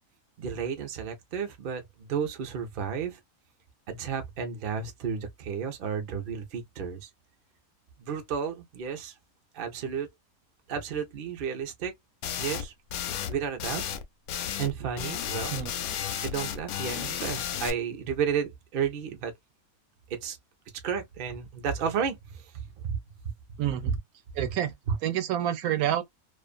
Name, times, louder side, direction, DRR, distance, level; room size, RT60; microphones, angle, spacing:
voice 1, 0.4-3.2 3.9-7.1 8.0-9.1 9.5-10.1 10.7-11.9 12.4-12.7 13.3-13.8 14.6-15.5 16.1-19.3 20.1-20.4 20.8-23.0 24.4-24.5 24.9-25.0, right 7 dB, 50° right, 0.6 m, -32 dB
sound 1, 12.2-12.6 12.9-13.3 13.6-14.7 15.0-17.7, left 9 dB, 80° left, 1.0 m, -33 dB
voice 2, 23.6-24.0 24.4-24.7 25.0-26.0, right 11 dB, 80° right, 1.1 m, -28 dB
2.5 x 2.4 x 2.3 m
omnidirectional pair, 1.5 m